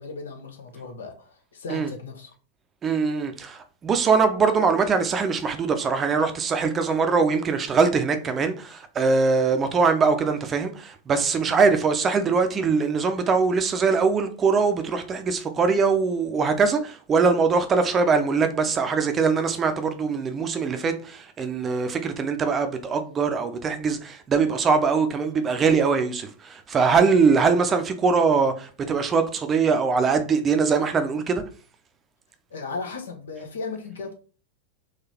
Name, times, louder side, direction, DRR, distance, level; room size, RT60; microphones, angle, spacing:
voice 1, 0.0-2.3 11.6-11.8 32.5-34.1, left 4 dB, 65° left, 1.1 m, -36 dB
voice 2, 2.8-31.4, right 5 dB, 25° right, 0.6 m, -22 dB
3.8 x 3.2 x 4.3 m
figure-of-eight pair, 90°, 0 cm